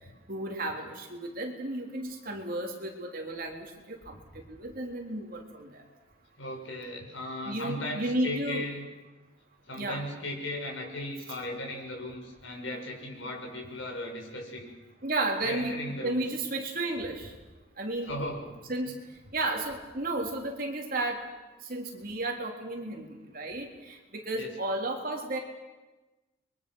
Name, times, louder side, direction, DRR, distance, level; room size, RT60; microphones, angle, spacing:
voice 1, 0.3-5.8 7.4-8.6 9.8-10.0 15.0-17.3 17.8-18.1 18.7-18.9 19.3-21.3 21.6-25.4, right 2 dB, 45° right, 1 dB, 3.6 m, -33 dB
voice 2, 6.4-8.9 9.7-14.7 15.4-16.2 18.1-18.5 24.3-24.5, left 1 dB, 70° left, 1 dB, 6.4 m, -37 dB
30.0 x 23.5 x 6.4 m, 1.1 s
head